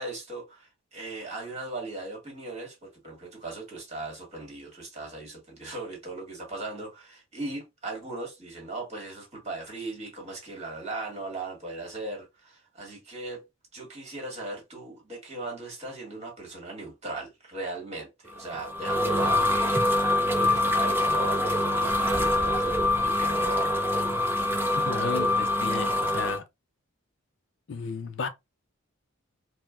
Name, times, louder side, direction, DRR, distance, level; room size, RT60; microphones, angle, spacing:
voice 1, 0.0-13.4 13.7-23.8, right 2 dB, 30° right, 1.5 m, -38 dB
sound 1, 18.4-26.4, left 1 dB, 10° right, 0.4 m, -25 dB
voice 2, 24.8-26.4 27.7-28.3, left 5 dB, 60° left, 0.4 m, -33 dB
4.3 x 2.0 x 2.3 m
head